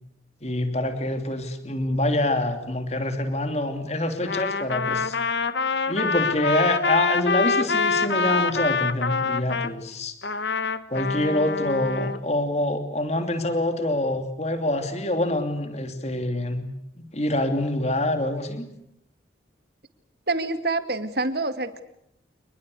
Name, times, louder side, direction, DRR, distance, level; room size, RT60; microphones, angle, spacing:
voice 1, 0.4-5.2 5.9-10.1 10.9-16.7 17.0-18.7, left 1 dB, 35° left, 7 dB, 2.9 m, -26 dB
Trumpet, 4.2-9.7 10.2-12.2, left 4 dB, 65° left, 1.3 m, -25 dB
voice 2, 20.3-21.8, right 3 dB, 55° right, 10 dB, 2.3 m, -26 dB
29.0 x 21.0 x 8.4 m, 0.76 s
head